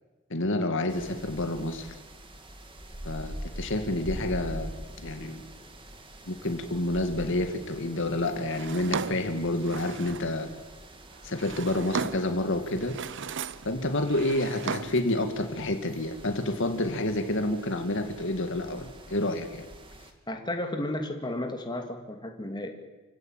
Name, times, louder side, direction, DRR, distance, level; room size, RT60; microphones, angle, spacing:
voice 1, 0.3-1.9 3.0-4.7 5.0-5.4 6.3-10.5 11.2-13.0 13.6-19.7, left 1 dB, 60° left, 6 dB, 2.3 m, -29 dB
sound 1, 0.9-20.1, right 1 dB, 25° right, 2.7 m, -45 dB
Drawer open or close, 8.5-10.3 11.1-12.4 12.8-13.7 14.0-15.1, right 5 dB, 60° right, 0.7 m, -36 dB
voice 2, 20.3-22.7, left 1 dB, 20° left, 3 dB, 2.8 m, -33 dB
29.5 x 16.5 x 9.1 m, 1.2 s
head